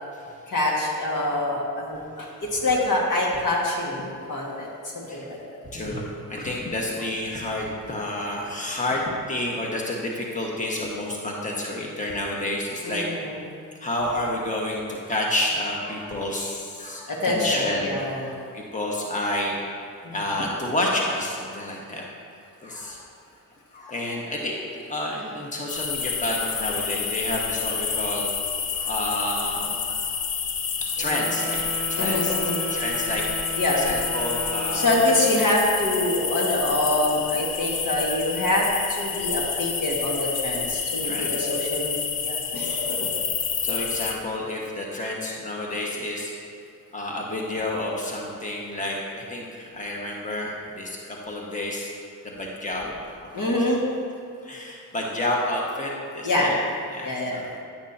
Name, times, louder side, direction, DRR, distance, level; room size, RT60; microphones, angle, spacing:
voice 1, 0.5-5.4 12.8-13.4 17.1-18.3 20.0-20.2 32.0-32.7 33.6-33.8 34.7-43.1 53.3-53.8 56.2-56.5 57.0-57.4, left 1 dB, 60° left, -3 dB, 1.9 m, -25 dB
voice 2, 5.7-13.1 13.8-19.6 20.1-22.1 22.6-23.1 23.7-28.3 28.7-29.8 30.1-30.2 30.8-32.3 32.7-34.9 41.0-41.5 43.0-43.1 43.6-46.3 46.9-51.9 52.2-53.7 54.4-56.5 56.9-57.5, left 1 dB, 20° left, -2 dB, 1.5 m, -30 dB
sound 1, 25.7-44.2, left 6 dB, 75° left, 0.9 m, -28 dB
Wind instrument woodwind instrument, 31.0-35.6, right 1 dB, 25° right, 1.0 m, -35 dB
10.5 x 8.9 x 2.9 m, 2.5 s
cardioid pair, 65°, 36 cm